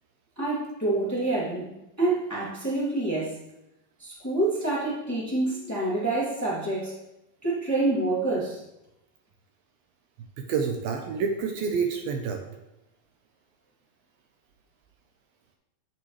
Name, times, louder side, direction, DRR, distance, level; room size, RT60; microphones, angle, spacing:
voice 1, 0.4-3.4 4.0-7.0 7.4-8.6, right 2 dB, 5° left, -7 dB, 1.9 m, -27 dB
voice 2, 10.4-12.4, right 5 dB, 75° right, 4 dB, 2.4 m, -28 dB
9.6 x 9.0 x 3.2 m, 0.89 s
omnidirectional pair, 4.5 m